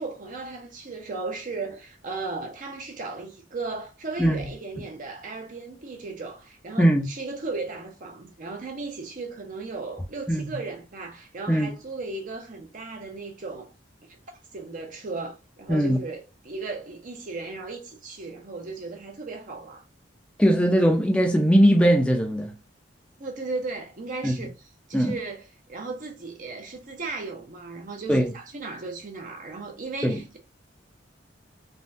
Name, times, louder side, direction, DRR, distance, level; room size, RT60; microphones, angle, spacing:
voice 1, 0.0-13.7 14.1-14.2 14.5-19.8 23.2-30.4, right 3 dB, 45° right, 0.6 m, -36 dB
voice 2, 20.4-22.5 24.2-24.3 24.9-25.1 28.1-28.3 30.0-30.2, equal, 5° left, 0.4 m, -20 dB
3.4 x 2.1 x 2.6 m
head